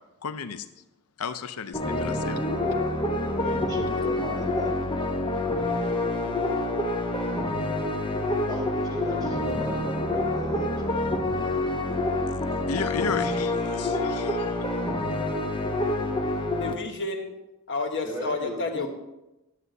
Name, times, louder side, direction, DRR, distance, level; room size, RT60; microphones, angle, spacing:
voice 1, 0.2-0.7 1.2-2.4 12.0-14.7, left 6 dB, 75° left, 12 dB, 0.6 m, -34 dB
sound 1, 1.7-16.7, left 2 dB, 20° left, 0.9 m, -27 dB
voice 2, 1.9-3.0 3.4-4.8 8.5-10.7 18.0-18.9, equal, ahead, -1 dB, 1.5 m, -36 dB
voice 3, 16.6-17.4 17.7-18.9, left 3 dB, 55° left, 5 dB, 1.2 m, -30 dB
11.5 x 8.3 x 4.1 m, 0.96 s
head